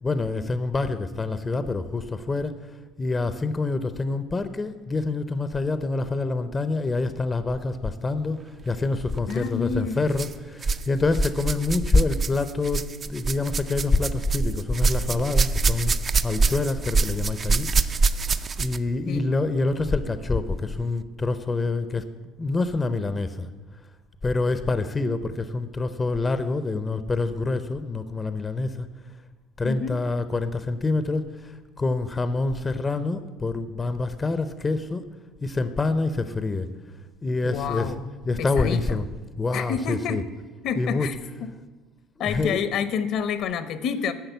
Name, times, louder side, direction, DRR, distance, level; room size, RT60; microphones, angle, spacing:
voice 1, 0.0-2.6 3.0-8.4 8.7-15.9 16.2-17.7 18.6-22.1 22.4-23.5 24.2-28.9 29.6-35.0 35.4-36.7 37.2-37.9 38.3-39.0 39.4-40.2 40.8-41.1 42.2-42.6, left 3 dB, 20° left, 11 dB, 0.6 m, -26 dB
sound 1, 9.2-9.4 10.1-10.9 11.1-18.9 19.9-20.0 20.8-20.9, right 4 dB, 30° right, 0.4 m, -25 dB
voice 2, 9.3-10.0 19.1-19.3 29.6-30.0 37.4-38.0 38.4-39.0 39.5-40.2 40.6-41.5 42.2-44.1, left 7 dB, 60° left, 13 dB, 0.8 m, -28 dB
10.5 x 6.4 x 8.0 m, 1.3 s
cardioid pair, 115°, 0 cm